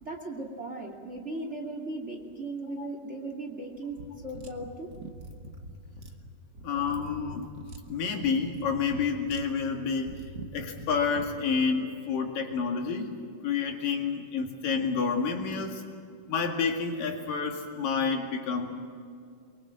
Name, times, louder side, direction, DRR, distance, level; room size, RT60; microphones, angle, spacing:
voice 1, 0.0-4.9, right 2 dB, 25° right, 3 dB, 2.3 m, -37 dB
sound 1, 4.0-11.3, right 1 dB, 40° right, 1.7 m, -44 dB
voice 2, 6.6-7.5 7.9-13.1 13.4-15.8 16.3-18.7, left 5 dB, 75° left, 2 dB, 3.9 m, -29 dB
24.0 x 23.5 x 7.7 m, 2.4 s
omnidirectional pair, 3.9 m